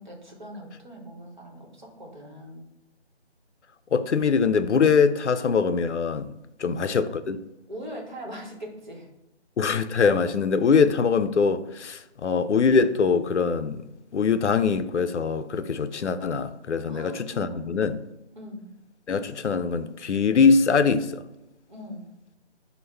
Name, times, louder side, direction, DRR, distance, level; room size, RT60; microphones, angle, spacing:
voice 1, 0.0-2.6 6.6-6.9 7.7-9.1 16.9-17.6 18.3-18.7 21.7-22.1, equal, 40° right, 1.0 m, -41 dB
voice 2, 3.9-6.3 6.6-7.4 9.6-13.9 14.1-18.0 19.1-21.2, left 5 dB, 85° left, 0.5 m, -23 dB
5.3 x 2.1 x 3.3 m
figure-of-eight pair, 165°, 34 cm